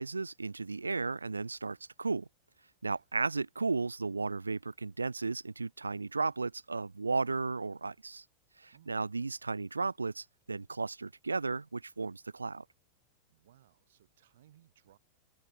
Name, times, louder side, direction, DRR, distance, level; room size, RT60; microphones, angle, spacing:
voice 1, 0.0-2.3 2.8-8.2 8.6-12.6, right 3 dB, 80° right, 0.3 m, -34 dB
voice 2, 13.3-15.0, right 12 dB, 60° right, 2.4 m, -64 dB
figure-of-eight pair, 90°, 0 cm